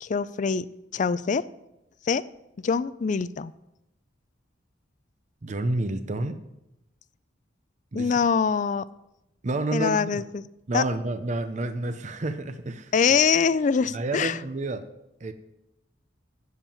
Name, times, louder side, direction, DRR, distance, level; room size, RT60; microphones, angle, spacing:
voice 1, 0.0-1.5 2.0-2.2 2.6-3.5 7.9-8.9 9.7-10.4 10.7-10.8 12.9-14.4, left 6 dB, 40° left, 17 dB, 0.4 m, -24 dB
voice 2, 5.4-6.4 7.9-8.1 9.4-10.2 10.7-12.9 13.9-14.9 15.2-15.3, right 2 dB, 40° right, 9 dB, 0.6 m, -29 dB
8.1 x 7.3 x 8.5 m, 0.90 s
head